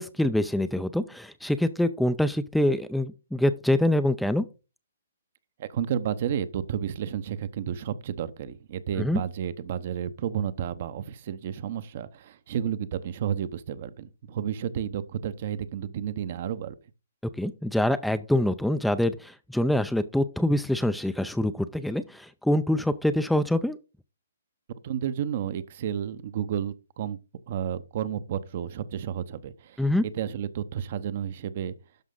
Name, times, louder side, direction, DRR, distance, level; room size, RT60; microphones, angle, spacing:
voice 1, 0.0-4.5 9.0-9.2 17.4-23.8 29.8-30.0, left 1 dB, ahead, 0.5 m, -25 dB
voice 2, 5.6-16.7 24.8-27.2 27.5-29.8 30.1-31.7, right 9 dB, 50° right, 0.9 m, -31 dB
12.0 x 5.0 x 3.8 m
hypercardioid pair, 145°, 0 cm